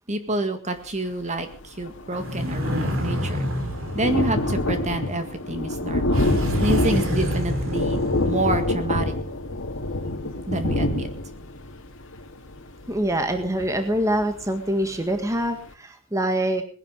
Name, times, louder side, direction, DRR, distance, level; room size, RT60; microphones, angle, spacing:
voice 1, 0.1-3.5 3.9-9.1 10.5-11.1, right 2 dB, 30° right, 8 dB, 1.8 m, -28 dB
Thunder, 1.5-1.6 1.9-14.5 15.0-15.1 15.4-15.5, left 1 dB, 60° left, 2.3 m, -27 dB
sound 1, 2.1-5.2 6.1-8.8, equal, 65° right, 3.1 m, -28 dB
voice 2, 12.9-16.6, right 1 dB, 15° right, 6 dB, 1.7 m, -25 dB
20.0 x 10.5 x 5.3 m, 0.41 s
head